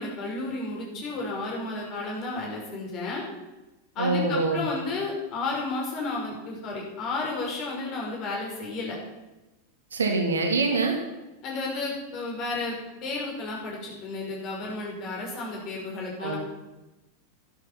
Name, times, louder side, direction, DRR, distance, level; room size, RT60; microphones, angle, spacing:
voice 1, 0.0-3.2 4.0-9.0 11.4-16.4, left 3 dB, 35° left, -2 dB, 5.5 m, -32 dB
voice 2, 4.0-4.6 9.9-11.0 16.2-16.3, right 3 dB, 70° right, 3 dB, 2.5 m, -24 dB
13.0 x 11.0 x 5.9 m, 1.0 s
figure-of-eight pair, 90°, 0 cm